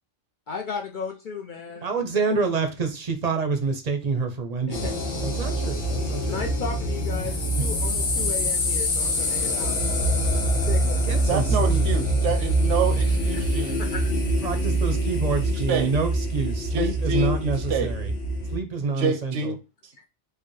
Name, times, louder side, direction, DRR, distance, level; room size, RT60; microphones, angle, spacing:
voice 1, 0.5-1.9 4.7-4.9 6.2-9.8 10.7-11.0 13.3-14.1, left 6 dB, 60° left, 0.5 m, -35 dB
voice 2, 1.8-4.9 5.2-6.4 7.2-7.4 11.1-11.9 14.4-18.1 18.5-19.5, right 4 dB, 45° right, 0.6 m, -27 dB
sound 1, 4.7-18.6, equal, 85° left, 1.3 m, -25 dB
voice 3, 11.3-13.8 15.4-15.9 16.7-17.9 19.0-19.5, right 4 dB, 85° right, 1.0 m, -27 dB
4.8 x 2.2 x 3.1 m
omnidirectional pair, 1.2 m